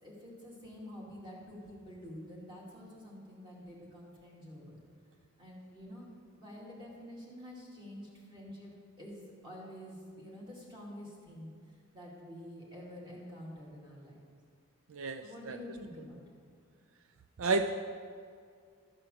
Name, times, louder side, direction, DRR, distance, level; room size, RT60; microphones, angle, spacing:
voice 1, 0.0-4.8 5.4-6.1 6.4-8.7 9.0-11.5 11.9-14.2 15.2-16.2, equal, 20° right, -4 dB, 2.4 m, -48 dB
voice 2, 14.9-15.6 17.4-17.7, right 3 dB, 75° right, 7 dB, 0.4 m, -31 dB
13.0 x 4.5 x 7.6 m, 2.2 s
head